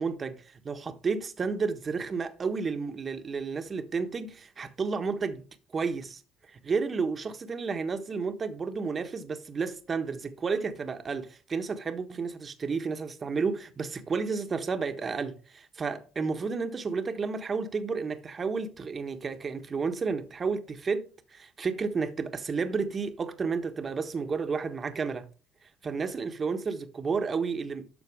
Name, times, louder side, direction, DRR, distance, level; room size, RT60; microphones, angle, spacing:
voice 1, 0.0-5.4 5.7-6.2 6.5-25.3 25.8-27.9, right 5 dB, 35° right, 1.3 m, -31 dB
12.5 x 4.5 x 4.9 m
supercardioid pair, 80°, 0 cm